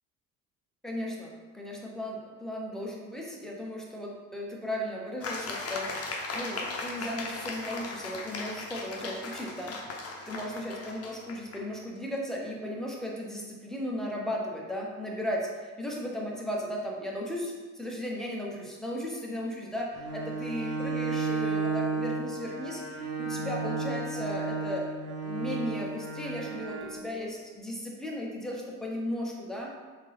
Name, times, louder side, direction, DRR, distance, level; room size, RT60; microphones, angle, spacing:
voice 1, 0.8-24.9 25.2-29.7, equal, ahead, -2 dB, 0.8 m, -36 dB
sound 1, 5.2-11.6, left 3 dB, 35° left, 0.7 m, -37 dB
Bowed string instrument, 19.9-27.0, right 4 dB, 65° right, 0.8 m, -33 dB
3.5 x 2.7 x 3.3 m, 1.4 s
hypercardioid pair, 60°, 44 cm